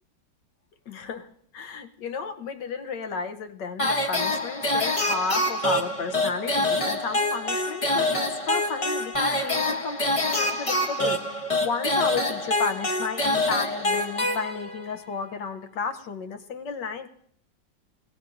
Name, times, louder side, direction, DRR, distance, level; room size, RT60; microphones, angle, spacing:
voice 1, 0.9-11.2 11.6-17.1, left 5 dB, 70° left, 7 dB, 1.6 m, -32 dB
sound 1, 3.8-14.9, left 1 dB, 25° left, 0.8 m, -26 dB
26.5 x 17.5 x 2.6 m, 0.65 s
omnidirectional pair, 2.0 m